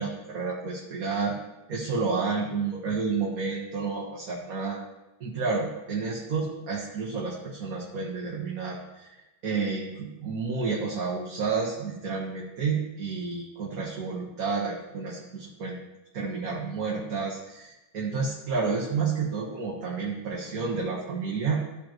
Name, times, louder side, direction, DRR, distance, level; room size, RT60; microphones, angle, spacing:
voice 1, 0.0-1.4 1.7-4.8 5.2-15.7 16.1-21.6, right 4 dB, 55° right, -4 dB, 1.6 m, -30 dB
14.0 x 5.2 x 2.9 m, 0.99 s
omnidirectional pair, 2.0 m